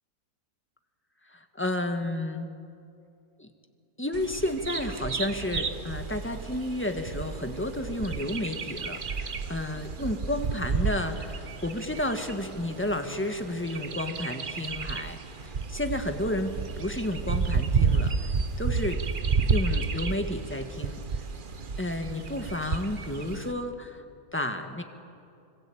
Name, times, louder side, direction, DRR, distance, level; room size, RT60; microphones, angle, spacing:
voice 1, 1.3-2.5 3.4-3.5 4.0-15.2 15.4-18.3 18.6-19.0 19.5-21.0 21.8-24.0 24.3-24.8, left 1 dB, 5° left, 5 dB, 1.5 m, -31 dB
Bird vocalization bird call bird song, 4.1-23.5, right 5 dB, 40° right, 0.9 m, -31 dB
25.5 x 25.0 x 8.7 m, 2.6 s
omnidirectional pair, 1.8 m